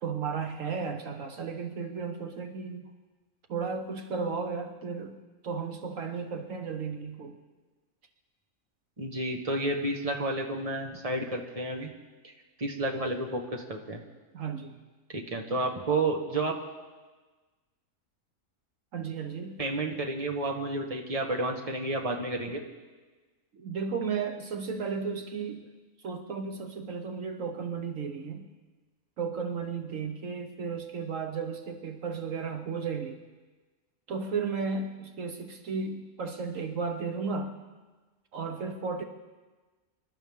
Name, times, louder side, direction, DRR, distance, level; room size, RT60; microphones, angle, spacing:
voice 1, 0.0-2.9 3.5-5.2 5.4-7.4 14.3-14.8 18.9-19.6 23.5-25.7 26.0-28.5 29.2-33.2 34.1-37.5 38.3-39.0, right 5 dB, 70° right, 5 dB, 1.3 m, -34 dB
voice 2, 9.0-11.9 12.6-14.0 15.1-16.5 19.6-22.6, right 2 dB, 25° right, 1 dB, 1.5 m, -31 dB
26.0 x 12.5 x 3.6 m, 1.3 s
omnidirectional pair, 1.4 m